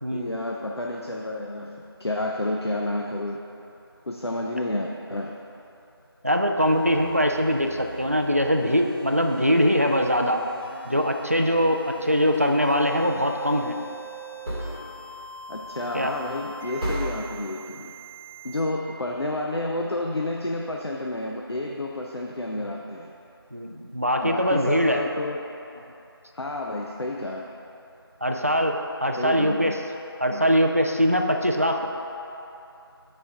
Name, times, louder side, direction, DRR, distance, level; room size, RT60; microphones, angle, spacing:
voice 1, 0.1-3.4 4.1-5.4 15.5-17.9 18.4-23.1 24.2-25.4 26.3-27.4 29.2-29.8 30.3-30.4, left 1 dB, 80° left, 0 dB, 0.6 m, -30 dB
voice 2, 6.2-10.5 10.9-13.8 15.9-16.1 22.6-22.7 23.5-25.0 28.2-29.7 30.2-31.9, equal, 35° right, 3 dB, 0.4 m, -22 dB
sound 1, 6.6-18.6, right 3 dB, 20° left, 1.1 m, -43 dB
sound 2, 11.9-12.7 14.4-15.2 15.6-15.8 16.1-16.5 16.8-17.4, equal, 15° right, 1.3 m, -33 dB
6.0 x 4.3 x 5.5 m, 2.9 s
figure-of-eight pair, 175°, 13 cm